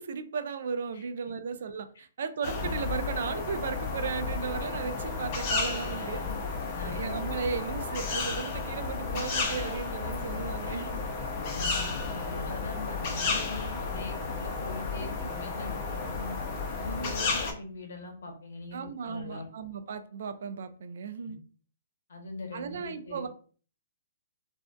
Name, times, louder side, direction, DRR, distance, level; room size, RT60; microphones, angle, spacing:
voice 1, 0.0-6.2 6.8-11.0 15.0-15.3 16.9-17.2 18.7-21.4 22.5-23.3, right 6 dB, 65° right, 0.3 m, -35 dB
sound 1, 2.4-17.5, left 4 dB, 35° left, 0.5 m, -33 dB
voice 2, 5.8-7.4 10.3-10.9 11.3-16.4 16.8-19.5 21.2-21.3 22.1-23.3, left 3 dB, 75° left, 0.8 m, -42 dB
2.6 x 2.2 x 2.2 m
hypercardioid pair, 160°, 0 cm